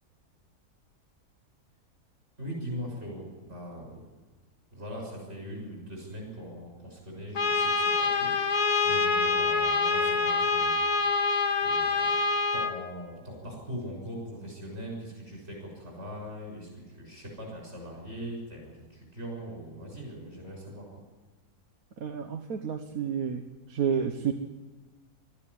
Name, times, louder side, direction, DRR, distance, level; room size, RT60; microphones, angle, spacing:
voice 1, 2.4-4.1 4.7-11.2 11.6-12.2 12.5-20.9, equal, 45° right, -1 dB, 7.0 m, -41 dB
Trumpet, 7.3-12.7, left 4 dB, 75° left, 1.8 m, -26 dB
voice 2, 22.0-23.4 23.7-24.3, right 7 dB, 65° right, 6 dB, 1.5 m, -30 dB
21.0 x 13.5 x 9.9 m, 1.2 s
omnidirectional pair, 1.7 m